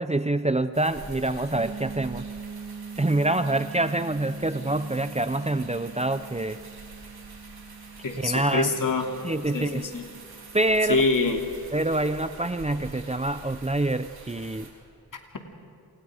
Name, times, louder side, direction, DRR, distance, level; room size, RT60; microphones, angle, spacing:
voice 1, 0.0-2.3 3.0-6.6 8.2-8.7 9.2-9.8 10.5-11.0 11.7-14.7, right 2 dB, 20° right, 12 dB, 0.7 m, -26 dB
sound 1, 0.7-14.7, right 3 dB, 80° right, 4.3 m, -46 dB
sound 2, 1.5-11.2, right 5 dB, 50° right, 3.4 m, -43 dB
voice 2, 8.0-9.1 9.5-10.0 10.9-11.4, left 3 dB, 55° left, 3 dB, 2.9 m, -25 dB
27.5 x 27.5 x 5.1 m, 2.5 s
wide cardioid pair, 75°, 37 cm